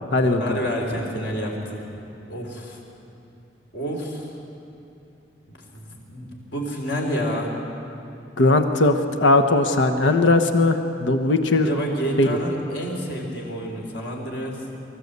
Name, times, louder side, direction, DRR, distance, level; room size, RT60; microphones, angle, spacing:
voice 1, 0.2-1.8 2.3-2.8 3.7-4.3 5.5-7.6 11.6-14.6, equal, 65° left, 0 dB, 3.9 m, -29 dB
voice 2, 8.4-11.7 12.2-12.3, left 2 dB, 85° left, 5 dB, 1.1 m, -18 dB
24.5 x 14.5 x 8.2 m, 2.8 s
head